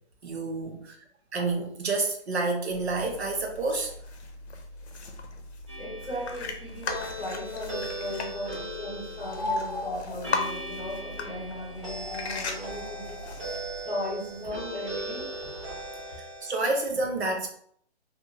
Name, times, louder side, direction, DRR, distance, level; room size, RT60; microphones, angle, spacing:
voice 1, 0.2-1.0 1.3-3.9 16.2-17.5, right 3 dB, 70° right, 2 dB, 0.8 m, -29 dB
sound 1, 2.7-13.8, left 4 dB, 70° left, 0.7 m, -38 dB
sound 2, 5.7-16.9, right 1 dB, 25° right, 0.8 m, -39 dB
voice 2, 5.8-13.2 13.8-15.3, left 1 dB, ahead, -24 dB, 0.5 m, -37 dB
sound 3, 9.2-16.1, left 2 dB, 30° left, 0.9 m, -40 dB
2.6 x 2.5 x 2.8 m, 0.63 s
hypercardioid pair, 175°, 34 cm